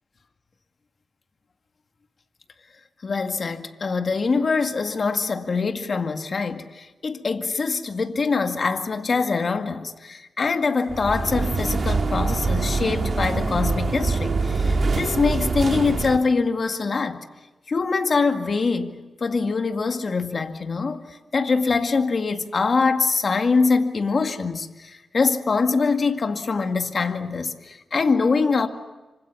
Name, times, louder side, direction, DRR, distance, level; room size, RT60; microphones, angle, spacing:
voice 1, 3.0-17.2 17.7-19.0 19.2-28.7, left 4 dB, 50° left, 2.1 m, -24 dB
sound 1, 10.9-16.2, right 3 dB, 55° right, 3.2 m, -24 dB
26.5 x 25.0 x 7.1 m
cardioid pair, 85°, 0 cm